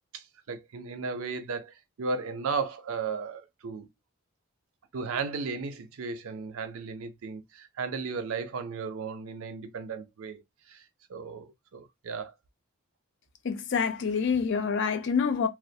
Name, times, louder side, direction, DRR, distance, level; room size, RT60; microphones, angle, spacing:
voice 1, 0.1-3.9 4.9-10.4 10.7-12.3, right 4 dB, 70° right, 0.5 m, -35 dB
voice 2, 13.4-15.5, left 6 dB, 55° left, 0.4 m, -27 dB
2.2 x 2.1 x 2.6 m
head